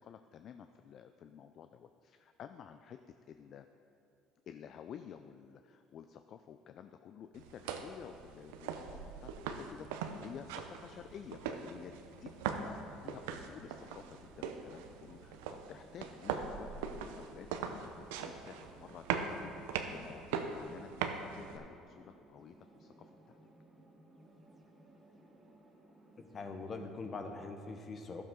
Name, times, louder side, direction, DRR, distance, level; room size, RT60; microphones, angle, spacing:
voice 1, 0.0-3.0 3.3-3.7 4.5-12.3 12.6-23.4, left 8 dB, 55° left, 9 dB, 0.3 m, -52 dB
sound 1, 7.3-21.6, right 6 dB, 85° right, 0.6 m, -41 dB
sound 2, 11.4-27.5, right 1 dB, 20° right, 1.6 m, -61 dB
voice 2, 26.2-28.2, left 3 dB, 40° left, 5 dB, 1.1 m, -43 dB
12.5 x 6.9 x 3.8 m, 2.8 s
supercardioid pair, 75°, 0 cm